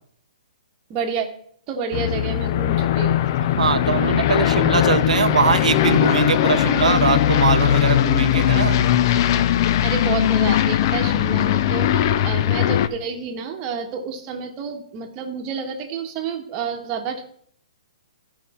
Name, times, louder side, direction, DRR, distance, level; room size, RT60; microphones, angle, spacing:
voice 1, 0.9-1.3 1.7-3.3 6.5-6.6 9.8-17.2, right 5 dB, 20° right, 2 dB, 1.2 m, -29 dB
Aircraft, 1.9-12.9, left 11 dB, 35° left, 0.4 m, -19 dB
voice 2, 3.6-8.8, right 6 dB, 90° right, 9 dB, 0.7 m, -21 dB
13.5 x 5.4 x 4.2 m, 0.62 s
hypercardioid pair, 160°, 4 cm